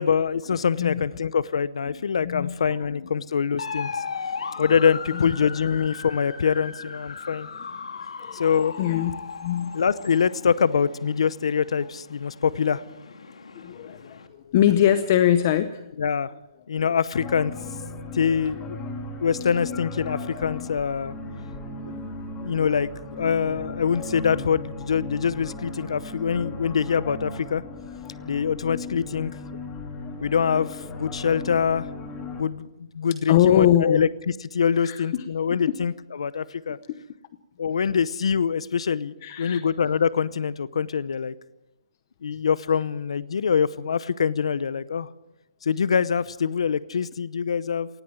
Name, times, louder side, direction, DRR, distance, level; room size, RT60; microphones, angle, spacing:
voice 1, 0.0-4.0 4.6-7.5 8.3-8.8 9.7-12.8 16.0-16.3 16.7-17.5 18.1-18.8 19.2-21.1 22.4-27.6 28.3-29.3 30.2-31.9 32.4-36.8 37.6-41.3 42.2-45.1 45.6-47.9, left 6 dB, 70° left, 18 dB, 0.8 m, -24 dB
voice 2, 1.9-2.6 2.9-3.1 4.6-4.7 5.1-5.4 8.2-9.8 13.5-15.8 21.9-22.0 22.3-22.5 33.3-34.0 34.8-35.3 35.7-35.8 39.2-39.6, left 11 dB, 30° left, 12 dB, 0.8 m, -23 dB
sound 1, 3.6-14.3, left 5 dB, 90° left, 2.5 m, -37 dB
sound 2, 17.1-32.4, left 3 dB, 15° left, 2.1 m, -36 dB
18.5 x 15.5 x 9.0 m, 0.97 s
hypercardioid pair, 170°, 3 cm